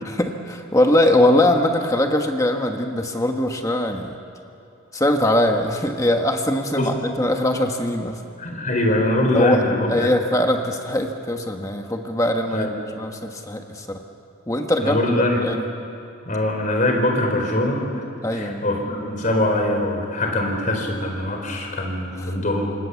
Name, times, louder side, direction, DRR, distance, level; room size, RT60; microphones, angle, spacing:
voice 1, 0.0-4.1 4.9-8.2 9.3-9.6 9.9-12.7 13.0-14.0 14.5-15.0 15.4-15.6 18.2-18.6, left 1 dB, 15° left, 4 dB, 1.4 m, -21 dB
voice 2, 8.4-10.1 12.5-12.7 14.8-15.4 16.3-17.9 18.3-22.8, left 1 dB, 40° left, 2 dB, 4.5 m, -22 dB
27.5 x 25.5 x 7.2 m, 2.8 s
head